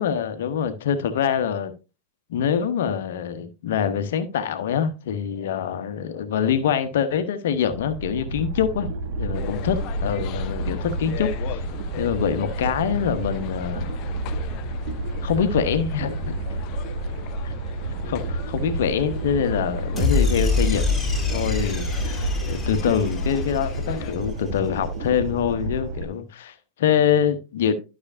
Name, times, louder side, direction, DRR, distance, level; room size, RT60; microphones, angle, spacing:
voice 1, 0.0-1.7 2.3-8.9 9.2-11.6 12.0-13.9 15.2-16.4 17.4-17.5 18.1-20.9 21.3-27.7, left 8 dB, 55° left, 1.0 m, -25 dB
sound 1, 7.6-26.1, right 2 dB, 50° right, 1.1 m, -30 dB
sound 2, 9.3-24.1, left 12 dB, 40° left, 0.5 m, -40 dB
sound 3, 20.0-24.3, left 3 dB, 5° left, 2.2 m, -26 dB
12.0 x 6.1 x 2.6 m
figure-of-eight pair, 90°, 0 cm